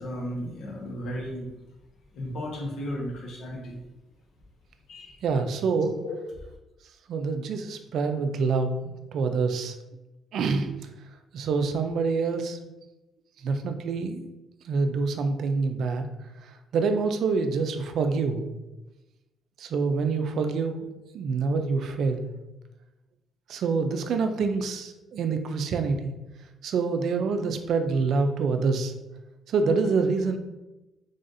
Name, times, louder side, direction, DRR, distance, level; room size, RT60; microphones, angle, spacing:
voice 1, 0.0-1.5 2.1-3.8 4.9-5.2 6.0-6.2, equal, 70° left, -1 dB, 1.1 m, -34 dB
voice 2, 5.2-6.0 7.1-9.7 10.3-10.7 11.3-12.6 13.4-14.3 14.6-16.0 16.7-18.4 19.6-20.9 21.1-22.3 23.5-26.1 26.6-28.9 29.5-30.4, right 4 dB, 65° right, 7 dB, 0.4 m, -26 dB
3.9 x 3.4 x 2.6 m, 1.0 s
cardioid pair, 135°, 0 cm